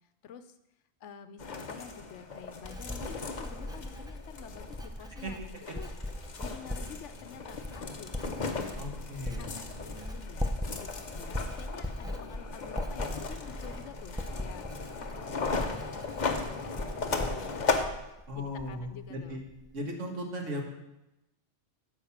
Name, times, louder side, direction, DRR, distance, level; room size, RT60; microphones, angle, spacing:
voice 1, 0.2-0.6 1.0-5.9 6.4-9.0 9.3-14.6 15.0-17.7 18.3-19.4, left 7 dB, 75° left, 11 dB, 1.0 m, -49 dB
sound 1, 1.4-17.9, left 4 dB, 40° left, 0.9 m, -37 dB
Writing, 1.9-19.0 19.2-19.7, left 1 dB, 5° right, 0.4 m, -39 dB
voice 2, 8.8-9.4 18.3-19.4 19.7-20.6, equal, 80° right, 2 dB, 1.9 m, -37 dB
10.0 x 5.3 x 7.2 m, 0.95 s
omnidirectional pair, 1.2 m